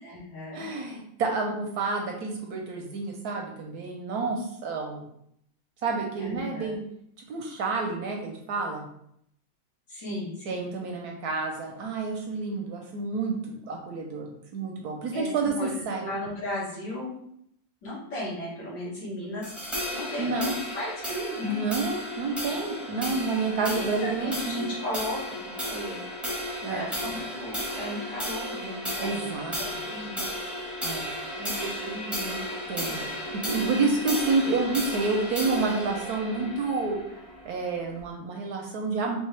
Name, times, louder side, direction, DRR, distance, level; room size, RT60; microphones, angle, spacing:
voice 1, 0.0-0.7 6.2-6.7 9.9-10.6 15.1-15.7 16.0-17.2 17.8-21.8 23.6-26.0 26.7-29.3 29.6-30.2 31.3-32.4, left 1 dB, 75° left, -7 dB, 2.5 m, -36 dB
voice 2, 0.5-5.0 5.8-6.8 7.3-8.9 10.5-16.0 20.2-20.5 21.4-24.7 26.6-26.9 29.0-29.8 30.8-31.1 32.7-33.0 33.3-37.0 37.4-39.2, right 3 dB, 70° right, 1 dB, 1.0 m, -29 dB
sound 1, 19.4-38.0, equal, ahead, 0.7 m, -34 dB
4.5 x 3.4 x 3.2 m, 0.71 s
omnidirectional pair, 2.0 m